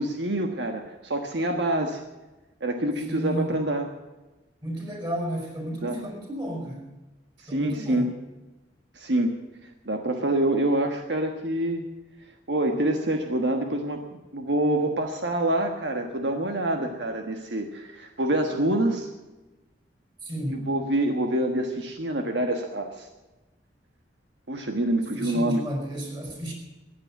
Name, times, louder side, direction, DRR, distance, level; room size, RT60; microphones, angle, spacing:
voice 1, 0.0-2.0 2.6-3.9 5.8-6.1 7.5-8.1 8.9-9.3 9.9-11.8 12.5-14.0 14.3-19.1 20.7-23.1 24.5-25.6, right 1 dB, 70° right, 4 dB, 1.4 m, -26 dB
voice 2, 3.1-3.5 4.6-6.9 7.5-8.1 20.2-20.7 25.1-26.5, right 1 dB, 25° right, 1 dB, 5.7 m, -32 dB
15.0 x 9.9 x 9.3 m, 1.1 s
head